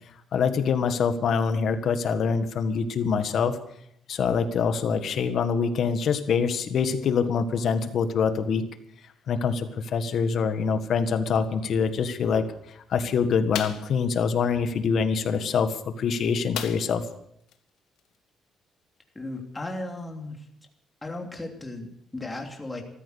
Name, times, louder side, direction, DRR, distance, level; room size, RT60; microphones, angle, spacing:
voice 1, 0.3-3.6 4.1-8.6 9.3-12.4 12.9-17.0, left 6 dB, 60° left, 10 dB, 1.6 m, -25 dB
sound 1, 13.5-13.9 16.5-17.1 17.5-17.6 18.0-18.2, left 10 dB, 80° left, 1.5 m, -34 dB
voice 2, 19.1-20.4 21.0-22.8, left 2 dB, 15° left, 2 dB, 3.0 m, -36 dB
14.0 x 14.0 x 6.6 m, 0.71 s
cardioid pair, 95°, 0 cm